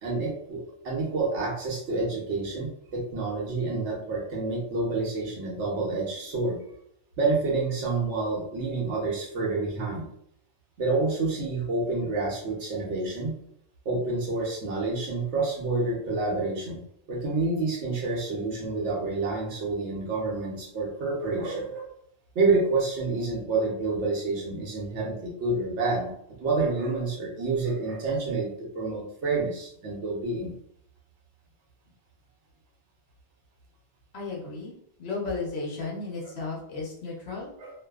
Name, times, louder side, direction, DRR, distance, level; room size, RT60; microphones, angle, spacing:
voice 1, 0.0-6.6 7.2-10.1 10.8-13.4 13.8-16.8 17.1-21.9 22.3-26.1 26.4-30.5 37.6-37.7, right 3 dB, 90° right, -1 dB, 1.1 m, -28 dB
voice 2, 34.1-34.7 35.0-37.5, left 3 dB, 70° left, -2 dB, 1.0 m, -34 dB
2.6 x 2.3 x 2.3 m, 0.72 s
omnidirectional pair, 1.1 m